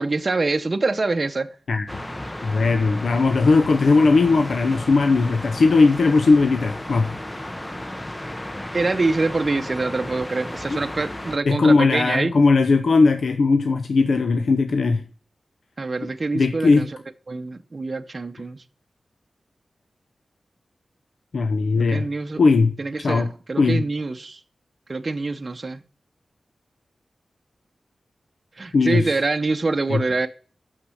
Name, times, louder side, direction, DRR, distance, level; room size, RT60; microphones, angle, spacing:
voice 1, 0.0-1.5 8.7-12.4 15.8-16.9 17.3-18.6 21.8-22.4 22.8-24.4 24.9-25.8 28.6-30.3, right 3 dB, 40° right, 0.7 m, -25 dB
sound 1, 1.9-11.4, left 1 dB, 15° left, 0.6 m, -34 dB
voice 2, 2.4-7.1 11.5-15.0 16.3-16.9 21.3-22.1 22.4-23.3 23.6-23.8 28.7-29.1 29.9-30.0, left 3 dB, 75° left, 0.6 m, -18 dB
6.6 x 5.9 x 6.3 m
wide cardioid pair, 90°, 0 cm